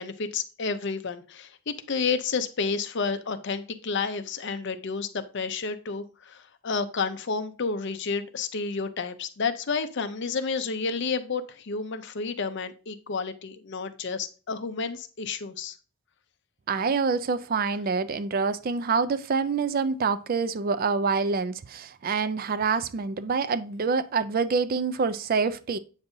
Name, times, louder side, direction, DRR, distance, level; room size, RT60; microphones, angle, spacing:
voice 1, 0.0-15.8, left 4 dB, 50° left, 0.5 m, -30 dB
voice 2, 16.7-25.8, right 5 dB, 40° right, 0.3 m, -26 dB
8.0 x 5.3 x 2.6 m
head